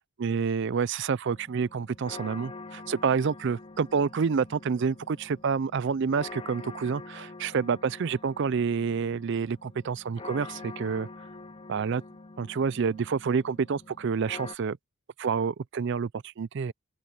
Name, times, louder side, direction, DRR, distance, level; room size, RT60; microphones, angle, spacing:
voice 1, 0.2-11.1 11.7-12.0 12.4-14.8 15.2-16.7, right 5 dB, 50° right, 0.4 m, -28 dB
sound 1, 1.3-14.6, left 3 dB, 25° left, 0.6 m, -46 dB
open air
head